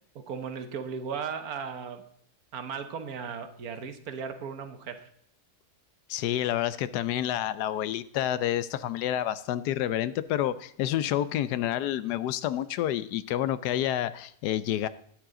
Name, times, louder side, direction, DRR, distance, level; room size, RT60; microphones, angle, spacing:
voice 1, 0.1-2.0 2.5-5.1, right 6 dB, 65° right, 9 dB, 1.5 m, -36 dB
voice 2, 6.1-14.9, left 12 dB, 80° left, 16 dB, 1.2 m, -29 dB
11.0 x 9.2 x 3.8 m, 0.67 s
omnidirectional pair, 1.7 m